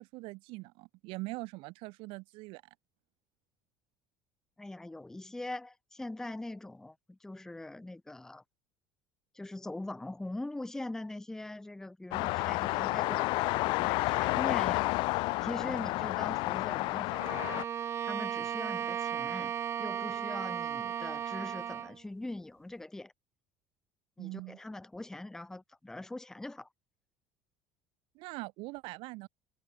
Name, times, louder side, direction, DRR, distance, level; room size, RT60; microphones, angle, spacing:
voice 1, 0.0-2.6 24.2-24.6 28.1-29.3, right 24 dB, 70° right, 4.3 m, -42 dB
voice 2, 4.6-8.4 9.3-17.2 18.0-19.5 19.8-23.1 24.2-26.7, left 2 dB, 5° left, 0.7 m, -42 dB
sound 1, 12.1-17.6, left 22 dB, 60° left, 0.3 m, -30 dB
Bowed string instrument, 17.1-22.0, right 9 dB, 30° right, 0.6 m, -35 dB
cardioid pair, 155°, 9 cm